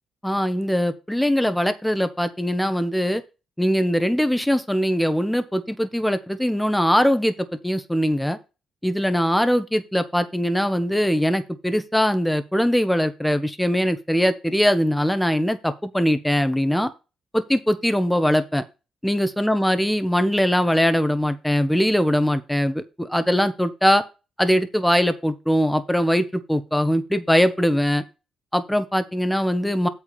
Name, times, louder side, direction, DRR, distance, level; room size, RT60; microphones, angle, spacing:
voice 1, 0.2-3.2 3.6-8.4 8.8-16.9 17.3-18.6 19.0-24.0 24.4-28.0 28.5-29.9, equal, 5° left, 10 dB, 1.3 m, -21 dB
8.4 x 4.8 x 6.8 m, 0.28 s
cardioid pair, 90°, 0 cm